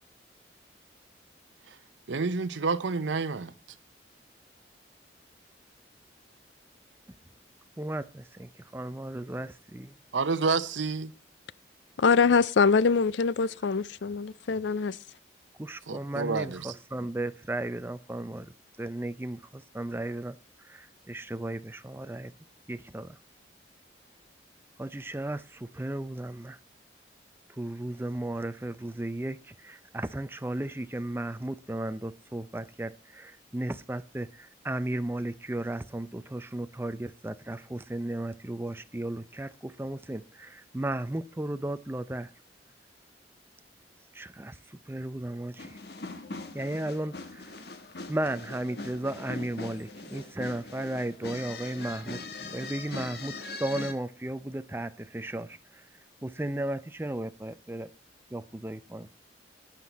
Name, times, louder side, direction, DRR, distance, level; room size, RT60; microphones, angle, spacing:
voice 1, 2.1-3.5 10.1-11.1 15.9-16.7, right 4 dB, 90° right, 0.7 m, -29 dB
voice 2, 7.8-9.9 15.6-20.4 20.6-22.3 22.7-23.2 24.8-26.6 27.6-42.3 44.1-44.6 44.9-45.8 46.5-47.5 48.1-55.8 56.2-57.9 58.3-59.2, right 1 dB, 10° right, 0.5 m, -35 dB
voice 3, 12.0-15.0, left 5 dB, 80° left, 0.5 m, -24 dB
sound 1, 45.6-53.9, left 3 dB, 60° left, 1.3 m, -41 dB
12.0 x 9.5 x 4.1 m
head